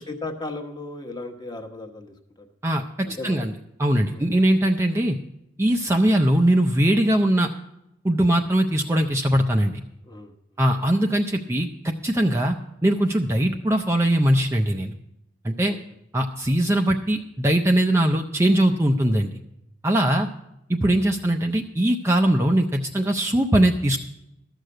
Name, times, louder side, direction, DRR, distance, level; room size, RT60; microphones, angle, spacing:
voice 1, 0.0-2.5 3.0-3.4 4.1-4.2 10.1-10.3 15.6-15.8, left 2 dB, 20° left, 4 dB, 1.1 m, -36 dB
voice 2, 2.6-3.5 3.8-5.2 5.6-7.5 8.0-9.8 10.6-12.5 12.8-14.9 15.4-15.8 16.1-19.3 19.8-20.3 20.7-24.0, right 1 dB, 15° right, 3 dB, 0.4 m, -21 dB
13.0 x 6.5 x 7.7 m, 0.85 s
head